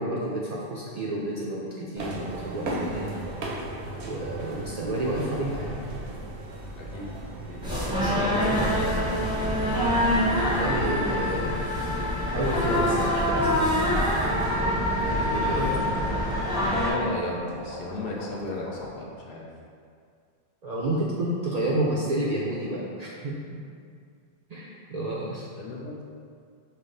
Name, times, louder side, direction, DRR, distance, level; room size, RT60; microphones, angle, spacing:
voice 1, 0.0-3.1 4.0-5.7 8.1-8.4 10.5-11.6 12.2-13.7 15.2-15.8 20.6-23.6 24.5-25.5, right 1 dB, 55° right, -5 dB, 0.5 m, -30 dB
sound 1, 2.0-10.8, right 1 dB, 80° right, 0.9 m, -36 dB
voice 2, 6.7-7.1 7.4-7.7 8.2-9.5 15.4-16.2 16.6-19.5 25.5-26.0, left 2 dB, 65° left, -3 dB, 0.8 m, -35 dB
sound 2, 7.6-16.9, equal, 5° right, 0.6 m, -25 dB
sound 3, 12.7-18.9, left 1 dB, 25° left, 0.9 m, -42 dB
5.4 x 2.0 x 3.8 m, 2.3 s
omnidirectional pair, 1.1 m